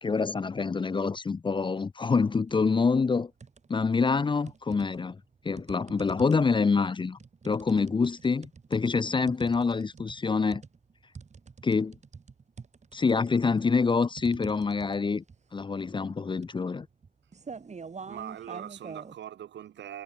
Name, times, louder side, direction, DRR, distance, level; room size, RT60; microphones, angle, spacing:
voice 1, 0.0-3.3 3.7-5.2 5.4-7.2 7.4-10.6 11.6-12.0 12.9-15.2 15.5-16.9, left 4 dB, 25° left, 0.7 m, -26 dB
sound 1, 2.2-2.6 3.0-3.9 4.5-19.1, right 5 dB, 35° right, 5.4 m, -46 dB
voice 2, 18.1-20.0, right 10 dB, 65° right, 1.9 m, -41 dB
cardioid pair, 90°, 20 cm